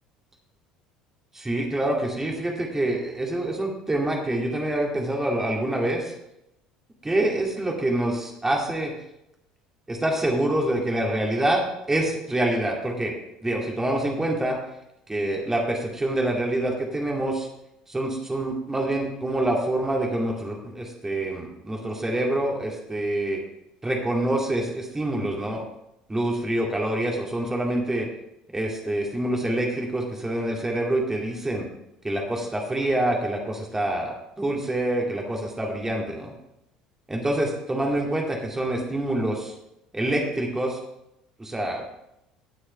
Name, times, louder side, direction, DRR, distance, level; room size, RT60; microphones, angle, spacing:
voice 1, 1.3-6.1 7.0-8.9 9.9-11.6 11.9-13.1 13.4-14.6 15.1-17.5 17.9-23.4 23.8-25.6 26.1-28.1 28.5-31.6 32.0-36.3 37.1-39.5 39.9-40.8 41.4-41.8, right 1 dB, 15° right, 0 dB, 2.5 m, -26 dB
18.0 x 6.4 x 3.3 m, 0.84 s
figure-of-eight pair, 60°, 3 cm